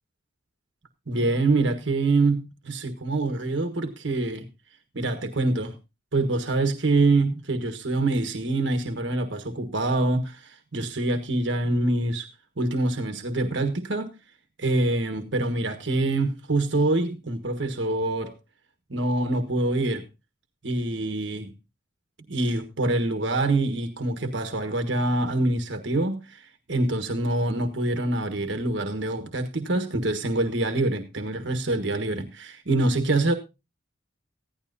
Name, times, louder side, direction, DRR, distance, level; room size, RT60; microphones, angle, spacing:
voice 1, 1.1-4.5 4.9-5.7 6.1-12.3 12.6-14.1 14.6-18.3 18.9-20.1 20.6-21.5 22.3-33.3, right 2 dB, 70° right, 1.4 m, -25 dB
15.5 x 12.0 x 2.7 m
head